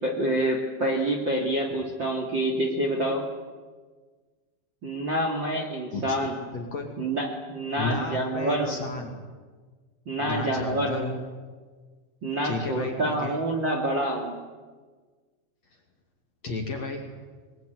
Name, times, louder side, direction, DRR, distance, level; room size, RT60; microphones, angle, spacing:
voice 1, 0.0-3.2 4.8-6.4 7.0-8.9 10.1-11.1 12.2-14.3, right 1 dB, 35° right, 2 dB, 2.2 m, -27 dB
voice 2, 6.5-6.9 7.8-9.2 10.2-11.2 12.4-13.4 16.4-17.1, left 3 dB, 45° left, 2 dB, 2.7 m, -33 dB
24.0 x 21.5 x 9.4 m, 1.4 s
omnidirectional pair, 5.7 m